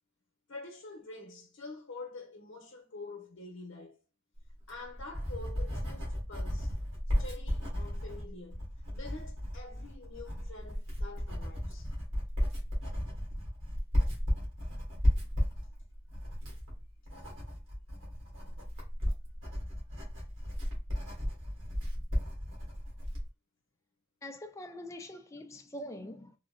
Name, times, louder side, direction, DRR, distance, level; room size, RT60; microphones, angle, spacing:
voice 1, 0.5-4.0 4.7-6.8 7.2-11.9, left 3 dB, 80° left, 0.8 m, -47 dB
Writing, 4.5-23.3, equal, 85° right, 1.7 m, -34 dB
voice 2, 24.2-26.4, left 1 dB, 15° left, 0.4 m, -44 dB
3.7 x 2.1 x 2.3 m
head